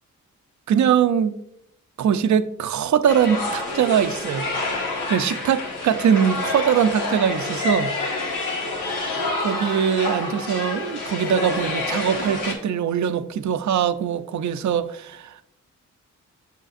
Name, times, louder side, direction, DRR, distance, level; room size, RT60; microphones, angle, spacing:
voice 1, 0.7-1.4 2.0-4.5 5.1-7.9 9.4-15.4, right 8 dB, 65° right, 0.5 m, -22 dB
sound 1, 3.1-12.5, left 2 dB, 85° left, 1.4 m, -28 dB
7.0 x 6.4 x 2.5 m
cardioid pair, 75°, 31 cm